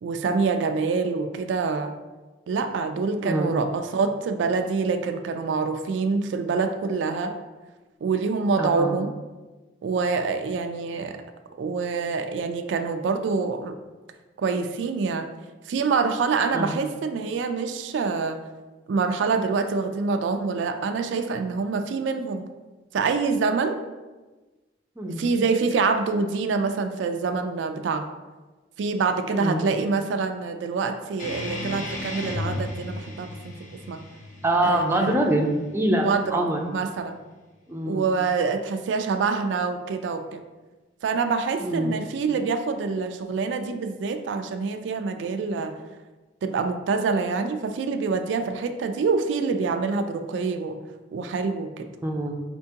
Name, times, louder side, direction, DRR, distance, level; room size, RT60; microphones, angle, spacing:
voice 1, 0.0-1.9 2.5-7.3 8.0-9.1 9.8-11.2 11.6-13.7 14.4-15.3 15.7-18.4 18.9-22.4 22.9-23.8 25.1-28.1 28.8-33.3 33.9-34.0 34.6-35.2 36.0-36.4 36.7-37.2 37.9-40.4 41.0-45.7 46.4-50.8 51.1-51.9, right 4 dB, 90° right, 7 dB, 0.3 m, -26 dB
voice 2, 3.2-3.6 8.6-9.0 16.5-16.8 25.0-25.3 29.3-29.6 34.4-36.6 37.7-38.1 41.6-41.9 52.0-52.3, right 1 dB, 15° right, 1 dB, 0.4 m, -25 dB
sound 1, 31.2-36.2, left 1 dB, 45° left, 0.7 m, -35 dB
4.4 x 3.4 x 2.8 m, 1.2 s
head